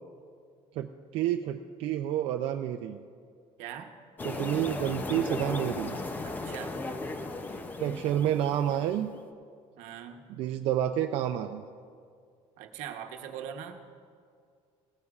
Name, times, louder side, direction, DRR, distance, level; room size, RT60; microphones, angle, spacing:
voice 1, 0.8-3.0 4.2-6.0 7.8-9.1 10.3-11.6, right 11 dB, 60° right, 5 dB, 0.4 m, -29 dB
voice 2, 3.6-3.9 6.2-6.8 9.8-10.4 12.6-13.8, right 9 dB, 85° right, 5 dB, 1.0 m, -41 dB
sound 1, 4.2-9.1, left 2 dB, 15° left, 0.5 m, -36 dB
17.5 x 15.0 x 2.4 m, 2.2 s
cardioid pair, 170°, 11 cm